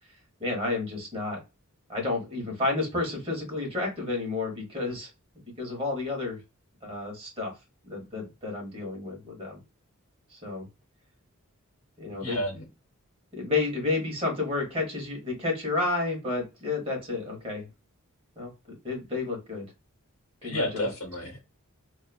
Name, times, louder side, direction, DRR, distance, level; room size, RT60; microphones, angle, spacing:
voice 1, 0.4-1.4 1.9-5.1 5.6-6.4 6.8-7.5 7.9-9.6 10.3-10.7 12.0-12.4 13.3-17.7 18.4-18.5 18.8-19.7 20.4-20.9, left 3 dB, 25° right, 1.0 m, -31 dB
voice 2, 12.2-12.7 20.4-21.4, equal, 80° left, 0.7 m, -31 dB
2.8 x 2.3 x 2.3 m
head